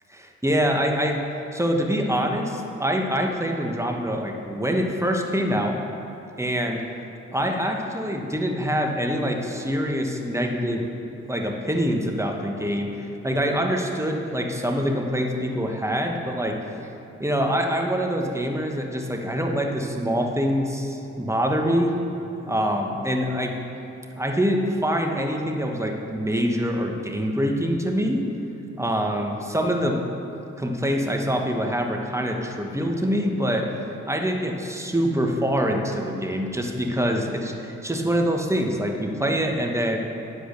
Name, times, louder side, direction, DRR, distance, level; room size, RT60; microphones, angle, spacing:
voice 1, 0.1-1.2 1.5-5.8 6.4-6.8 7.3-10.9 11.3-12.9 13.2-16.6 17.2-22.0 22.5-23.6 24.2-28.3 28.8-30.0 30.6-33.7 34.1-40.0, equal, 10° right, 2 dB, 1.3 m, -25 dB
10.5 x 5.0 x 6.6 m, 3.0 s
supercardioid pair, 55°, 32 cm